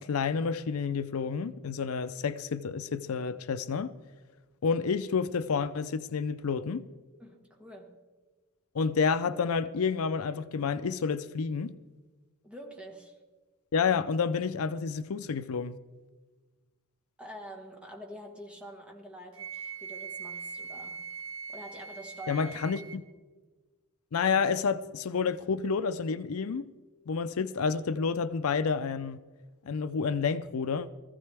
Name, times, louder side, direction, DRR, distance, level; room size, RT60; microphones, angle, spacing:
voice 1, 0.0-3.9 4.6-6.9 8.7-11.8 13.7-15.8 22.3-23.0 24.1-26.7 27.1-29.2 29.6-30.9, left 5 dB, 70° left, 0.5 m, -29 dB
voice 2, 7.2-8.0 12.4-13.2 17.2-21.1 21.5-22.5, right 1 dB, 5° right, 1.5 m, -46 dB
Wind instrument woodwind instrument, 19.4-23.0, right 5 dB, 65° right, 1.0 m, -41 dB
20.0 x 14.5 x 3.4 m
head